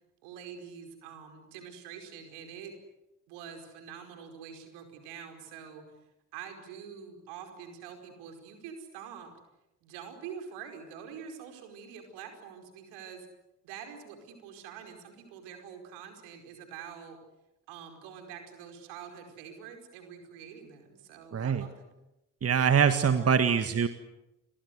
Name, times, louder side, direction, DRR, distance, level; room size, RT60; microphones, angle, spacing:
voice 1, 0.2-2.7 3.3-5.9 6.3-9.3 9.8-13.3 13.6-17.2 17.7-21.9 23.2-23.4, right 7 dB, 65° right, 6 dB, 5.0 m, -46 dB
voice 2, 21.3-21.6 22.4-23.9, right 7 dB, 35° right, 10 dB, 1.8 m, -24 dB
29.5 x 23.5 x 8.2 m, 0.92 s
figure-of-eight pair, 45°, 43 cm